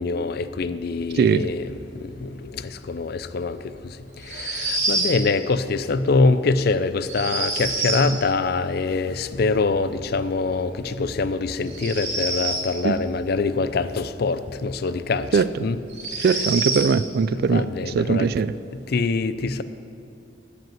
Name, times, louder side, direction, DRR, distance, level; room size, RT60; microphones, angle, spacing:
voice 1, 0.0-1.7 1.9-4.0 4.2-15.8 17.3-18.3 18.9-19.6, left 3 dB, 55° left, 0.4 m, -24 dB
voice 2, 1.1-1.5 8.1-8.2 12.8-12.9 15.3-15.5 16.2-18.5, right 5 dB, 55° right, 0.3 m, -21 dB
sound 1, 4.2-5.2 7.0-8.1 11.6-12.7 14.9-15.0 15.9-16.9, right 2 dB, 40° right, 2.3 m, -26 dB
13.5 x 5.3 x 8.9 m
head